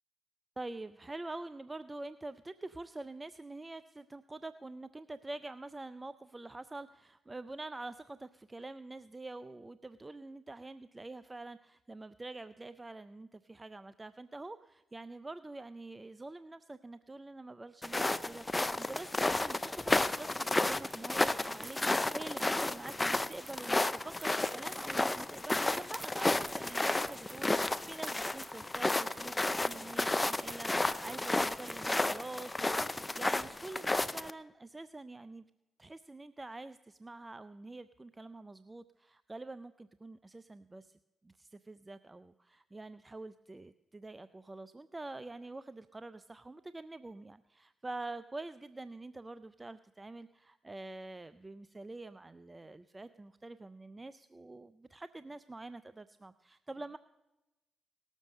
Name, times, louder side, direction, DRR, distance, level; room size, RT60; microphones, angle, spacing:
voice 1, 0.6-35.4 35.8-57.0, right 2 dB, 25° right, 14 dB, 0.5 m, -46 dB
sound 1, 17.8-34.3, left 2 dB, 20° left, 0.6 m, -32 dB
sound 2, 20.9-32.7, right 7 dB, 70° right, 0.7 m, -53 dB
18.5 x 7.2 x 6.5 m, 1.0 s
supercardioid pair, 50°, 0 cm